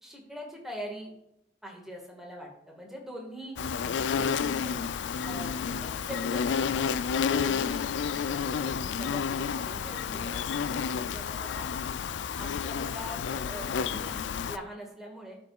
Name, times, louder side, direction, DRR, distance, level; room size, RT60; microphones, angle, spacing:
voice 1, 0.0-1.1 1.6-3.6 4.1-4.8 5.2-6.9 7.2-11.7 12.4-14.2 14.5-15.4, equal, 5° right, -1 dB, 1.8 m, -43 dB
Insect, 3.6-14.6, left 6 dB, 85° left, 0.4 m, -30 dB
13.0 x 5.3 x 2.4 m, 0.78 s
head